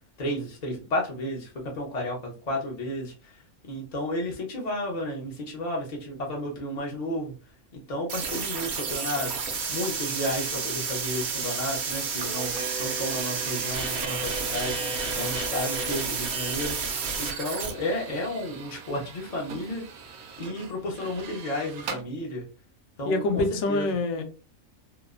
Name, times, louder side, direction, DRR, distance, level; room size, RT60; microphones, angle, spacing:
voice 1, 0.2-1.5 1.7-3.4 3.6-7.3 7.7-14.8 15.2-19.8 20.4-22.4 23.0-23.9, left 1 dB, 45° left, 0.5 m, -32 dB
sound 1, 8.1-17.7, right 5 dB, 60° right, 0.8 m, -31 dB
sound 2, 12.2-22.0, right 4 dB, 90° right, 1.1 m, -39 dB
voice 2, 23.1-24.2, left 2 dB, 75° left, 1.0 m, -25 dB
2.9 x 2.0 x 2.4 m
omnidirectional pair, 1.5 m